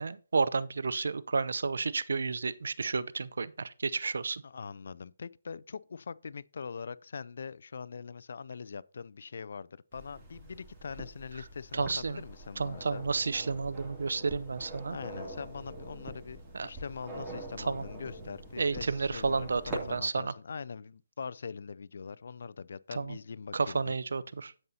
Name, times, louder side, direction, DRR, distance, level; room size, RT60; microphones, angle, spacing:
voice 1, 0.0-4.4 11.7-12.2 12.6-15.0 16.5-16.7 17.6-17.8 18.6-20.3 22.9-23.2 23.5-24.5, right 4 dB, 70° right, 0.5 m, -31 dB
voice 2, 4.4-13.0 14.9-24.0, left 5 dB, 60° left, 0.4 m, -42 dB
sound 1, 9.9-20.0, right 1 dB, 15° right, 2.6 m, -45 dB
15.5 x 5.5 x 2.8 m
hypercardioid pair, 160°, 0 cm